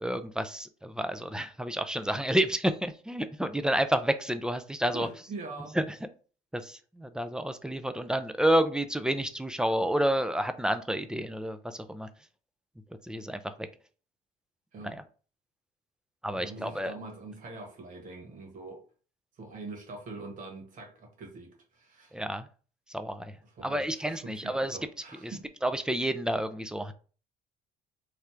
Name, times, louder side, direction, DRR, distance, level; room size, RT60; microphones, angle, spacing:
voice 1, 0.0-5.1 5.7-6.0 6.5-12.1 13.0-13.5 14.8-15.0 16.2-16.9 22.1-22.5 22.9-23.3 23.6-24.8 25.2-25.3 25.6-26.9, right 1 dB, 5° right, 0.3 m, -29 dB
voice 2, 4.9-5.8 14.7-15.0 16.3-18.8 19.4-22.2 23.5-25.5, right 3 dB, 50° right, 1.5 m, -43 dB
3.3 x 2.4 x 4.4 m
cardioid pair, 110°, 17 cm